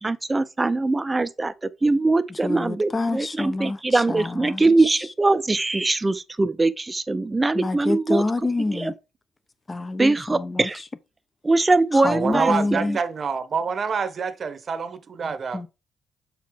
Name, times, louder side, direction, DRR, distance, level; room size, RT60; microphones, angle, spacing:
voice 1, 0.0-8.2 8.7-8.9 10.0-10.8 11.4-13.0, right 2 dB, 20° right, 0.6 m, -22 dB
voice 2, 2.4-4.6 7.5-8.9 9.7-10.7 12.0-13.0 15.5-15.7, left 2 dB, 25° left, 0.8 m, -27 dB
voice 3, 12.1-15.6, right 5 dB, 45° right, 1.0 m, -27 dB
7.1 x 4.7 x 3.6 m
cardioid pair, 90°, 0 cm